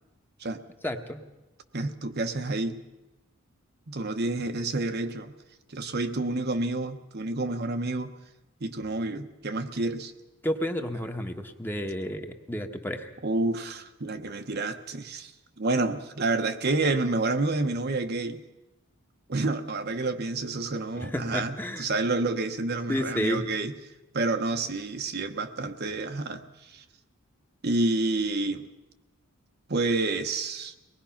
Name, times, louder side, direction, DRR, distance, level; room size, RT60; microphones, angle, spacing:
voice 1, 0.8-1.2 10.4-13.1 20.9-21.9 22.9-23.4, equal, 10° left, 5 dB, 1.2 m, -31 dB
voice 2, 1.7-2.8 3.9-5.3 5.7-8.1 8.6-10.1 13.2-15.3 15.6-18.4 19.3-23.7 24.1-26.8 27.6-28.7 29.7-30.7, right 2 dB, 50° right, 7 dB, 1.0 m, -29 dB
24.0 x 19.0 x 5.8 m, 1.0 s
head